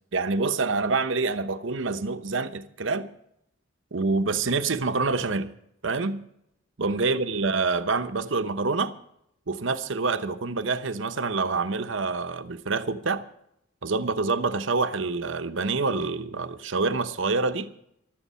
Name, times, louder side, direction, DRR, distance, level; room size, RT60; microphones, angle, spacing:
voice 1, 0.1-3.1 3.9-5.5 5.8-6.2 6.8-8.9 9.5-13.2 13.8-17.7, right 3 dB, 70° right, 0.9 m, -26 dB
16.0 x 12.5 x 5.6 m
head